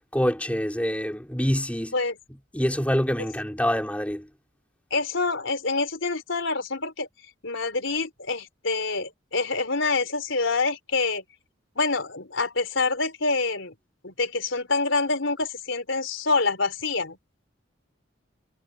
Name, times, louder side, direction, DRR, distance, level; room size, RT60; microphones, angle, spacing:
voice 1, 0.1-1.9 2.5-4.3, equal, 5° left, 3.3 m, -26 dB
voice 2, 4.9-7.1 7.4-11.2 11.8-13.7 14.0-17.2, left 3 dB, 80° left, 3.8 m, -26 dB
head